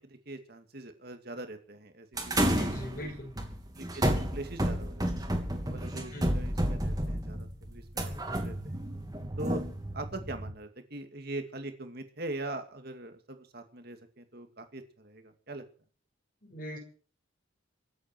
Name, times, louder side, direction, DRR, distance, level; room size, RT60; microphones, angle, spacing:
voice 1, 0.0-2.6 3.7-8.8 9.4-9.6 9.9-15.6, right 2 dB, 50° right, 7 dB, 2.4 m, -42 dB
sound 1, 2.2-10.5, right 1 dB, 20° right, 3.0 m, -31 dB
voice 2, 2.4-3.3 6.1-6.5 16.4-16.8, equal, 45° left, 2 dB, 6.1 m, -40 dB
24.5 x 8.8 x 6.1 m, 0.42 s
head